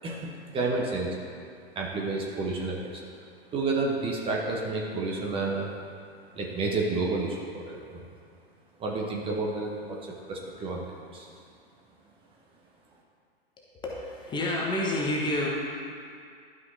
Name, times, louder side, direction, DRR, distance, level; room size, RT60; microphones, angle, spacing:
voice 1, 0.0-1.2 1.7-3.0 3.5-5.7 6.3-8.0 8.8-11.4, right 3 dB, 15° right, -2 dB, 0.9 m, -30 dB
voice 2, 13.8-15.5, left 1 dB, 15° left, -3 dB, 0.8 m, -29 dB
12.0 x 5.5 x 2.7 m, 2.2 s
figure-of-eight pair, 105°, 31 cm